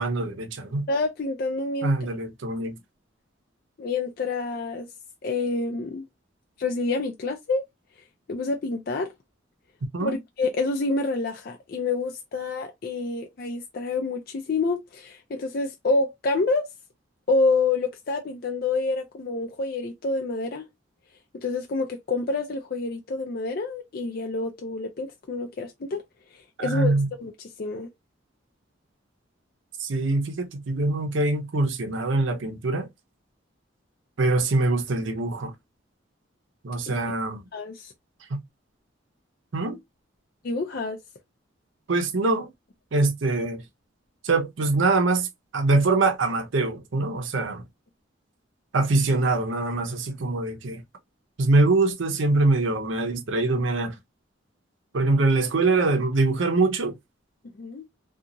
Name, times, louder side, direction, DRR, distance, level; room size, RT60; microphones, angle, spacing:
voice 1, 0.0-0.9 1.8-2.8 9.9-10.2 26.6-27.1 29.8-32.9 34.2-35.5 36.6-37.4 38.3-38.4 39.5-39.8 41.9-42.5 42.9-43.6 44.2-45.3 45.5-47.6 48.7-50.8 51.4-54.0 54.9-56.9, right 2 dB, 75° right, 0.6 m, -23 dB
voice 2, 0.9-1.9 3.8-4.9 5.2-6.0 6.6-7.6 8.3-9.1 10.0-16.7 17.3-20.7 21.3-26.0 26.3-27.3 27.6-27.9 36.9-37.0 37.5-37.9 40.4-41.0 57.6-57.9, left 3 dB, 50° left, 0.4 m, -27 dB
2.8 x 2.3 x 2.5 m
head